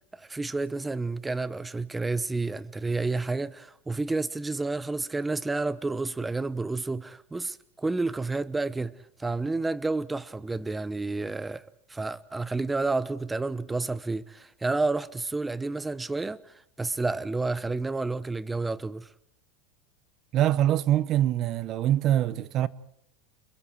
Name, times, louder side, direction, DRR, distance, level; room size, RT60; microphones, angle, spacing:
voice 1, 0.2-8.9 9.2-11.6 11.9-19.1, right 3 dB, 10° right, 0.9 m, -30 dB
voice 2, 20.3-22.7, right 12 dB, 40° right, 0.9 m, -24 dB
29.5 x 22.0 x 4.7 m
supercardioid pair, 140°, 0 cm